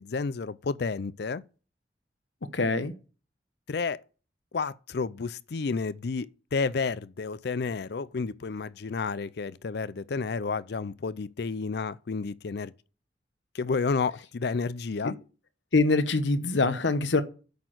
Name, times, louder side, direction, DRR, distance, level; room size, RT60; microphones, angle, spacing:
voice 1, 0.0-1.4 3.7-4.0 4.5-12.7 13.5-15.2, left 4 dB, 60° left, 0.5 m, -31 dB
voice 2, 2.5-2.9 15.0-15.1 15.7-17.2, left 3 dB, 80° left, 1.0 m, -24 dB
8.4 x 6.3 x 7.8 m
head